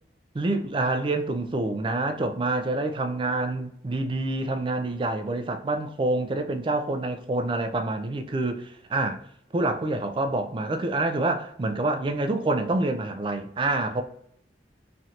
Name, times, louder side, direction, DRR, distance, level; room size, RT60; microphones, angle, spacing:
voice 1, 0.3-9.2 9.5-14.0, right 2 dB, 30° right, 0.3 m, -27 dB
3.2 x 2.8 x 2.4 m
head